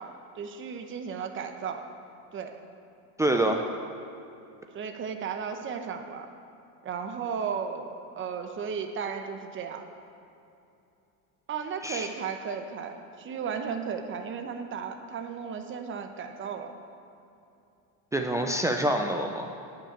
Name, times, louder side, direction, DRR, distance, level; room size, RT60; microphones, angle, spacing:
voice 1, 0.0-1.8 2.3-2.6 4.7-6.3 6.8-9.9 11.5-16.7, right 6 dB, 30° right, 6 dB, 0.9 m, -35 dB
voice 2, 3.2-3.6 11.8-12.1 18.1-19.5, right 1 dB, 10° right, 2 dB, 0.4 m, -26 dB
10.0 x 5.9 x 8.4 m, 2.7 s
supercardioid pair, 130°, 42 cm